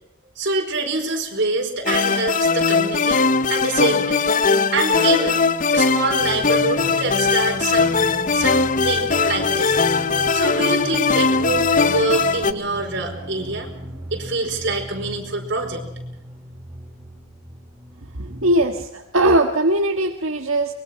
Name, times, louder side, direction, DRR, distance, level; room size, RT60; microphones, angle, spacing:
voice 1, 0.4-4.4 4.7-5.4 5.7-7.9 8.3-9.8 10.2-13.7 14.1-15.8, right 3 dB, 55° right, 3 dB, 4.7 m, -25 dB
sound 1, 1.9-12.5, left 4 dB, 40° left, 0.7 m, -19 dB
sound 2, 6.2-18.6, right 1 dB, 10° right, 4.6 m, -37 dB
voice 2, 18.1-20.7, right 1 dB, 85° right, 3 dB, 1.6 m, -20 dB
24.0 x 22.0 x 5.9 m, 0.84 s
head